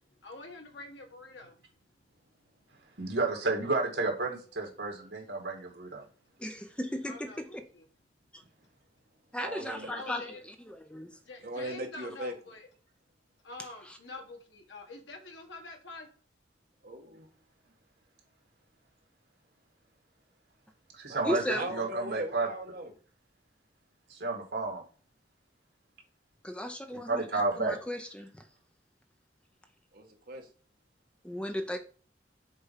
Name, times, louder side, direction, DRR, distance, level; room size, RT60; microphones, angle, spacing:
voice 1, 0.2-1.9 2.7-2.9 7.0-7.9 10.0-10.4 11.3-12.7 13.4-16.1, left 3 dB, 85° left, 1.7 m, -46 dB
voice 2, 3.0-6.1 20.9-22.5 24.1-24.8 26.9-27.8, right 3 dB, 70° right, 2.4 m, -31 dB
voice 3, 6.4-7.6 8.3-8.4 9.3-10.2 10.7-11.1 21.2-21.8 26.4-28.4 31.2-31.8, left 1 dB, 5° left, 0.5 m, -36 dB
voice 4, 9.4-9.9 11.4-12.3 16.8-17.3 21.0-21.3 21.6-22.9 29.9-30.5, right 1 dB, 55° right, 1.6 m, -39 dB
6.6 x 4.4 x 5.6 m
head